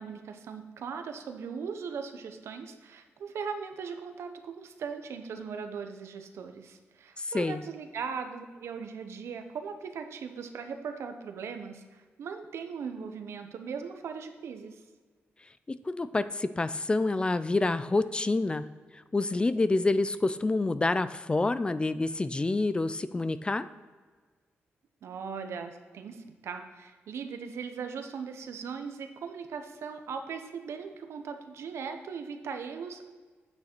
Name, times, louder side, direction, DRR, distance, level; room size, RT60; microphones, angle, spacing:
voice 1, 0.0-14.8 25.0-33.1, right 6 dB, 80° right, 6 dB, 0.9 m, -39 dB
voice 2, 7.2-7.6 15.7-18.6 19.1-23.7, left 2 dB, 20° left, 13 dB, 0.4 m, -27 dB
8.9 x 6.3 x 4.5 m, 1.4 s
cardioid pair, 90°, 5 cm